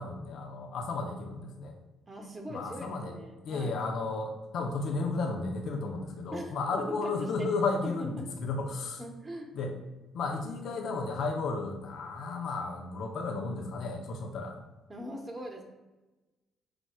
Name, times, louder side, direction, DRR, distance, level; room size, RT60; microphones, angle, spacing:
voice 1, 0.0-1.7 2.5-3.2 3.4-9.0 9.5-9.7 10.1-14.6, left 3 dB, 65° left, 2 dB, 0.4 m, -33 dB
voice 2, 2.1-3.8 6.3-7.5 7.8-8.3 9.0-9.5 14.9-15.6, equal, 30° right, 2 dB, 0.7 m, -41 dB
4.7 x 2.1 x 4.3 m, 1.1 s
hypercardioid pair, 45°, 0 cm